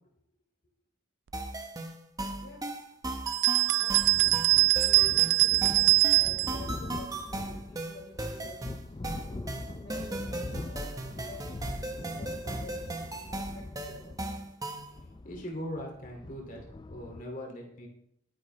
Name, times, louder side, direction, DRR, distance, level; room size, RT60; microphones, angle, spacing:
sound 1, 1.3-14.9, right 2 dB, 20° right, 1.3 m, -37 dB
sound 2, 3.3-6.6, right 17 dB, 75° right, 0.4 m, -23 dB
voice 1, 3.6-4.1 4.7-8.7 9.1-10.9 11.1-14.0, left 1 dB, 85° left, -6 dB, 5.2 m, -50 dB
sound 3, 4.0-17.2, left 2 dB, 25° left, 0.4 m, -42 dB
voice 2, 15.2-16.6 16.9-17.9, equal, 45° left, 0 dB, 2.6 m, -40 dB
20.0 x 10.0 x 3.3 m, 0.71 s
head